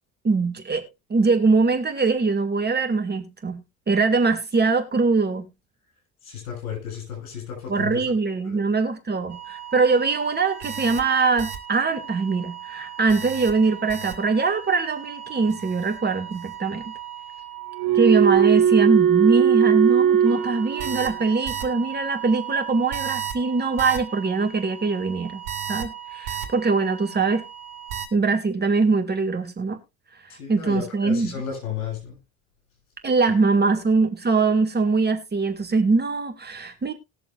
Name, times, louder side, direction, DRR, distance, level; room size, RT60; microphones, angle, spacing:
voice 1, 0.2-5.5 7.7-16.9 17.9-25.4 25.7-27.4 28.1-29.8 30.5-31.3 33.0-36.9, right 4 dB, 25° right, 1.9 m, -22 dB
voice 2, 6.2-8.0 8.4-8.6 30.3-32.2 33.6-33.8, left 7 dB, 75° left, 7.2 m, -33 dB
sound 1, 9.3-9.9 10.2-11.6 11.8-12.2 12.5-14.6 15.1-24.0 25.5-26.5 26.7-26.8 27.9-28.1, right 9 dB, 65° right, 2.2 m, -24 dB
20.5 x 6.8 x 2.4 m
hypercardioid pair, 65°, 42 cm